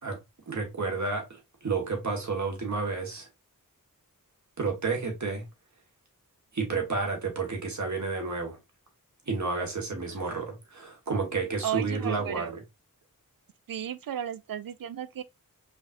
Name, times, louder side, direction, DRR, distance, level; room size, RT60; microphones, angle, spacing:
voice 1, 0.5-3.3 4.6-5.4 6.5-8.6 9.3-12.6, right 4 dB, 55° right, 1.4 m, -31 dB
voice 2, 11.6-12.6 13.7-15.2, right 10 dB, 75° right, 0.5 m, -34 dB
5.1 x 2.5 x 2.5 m
wide cardioid pair, 80°, 34 cm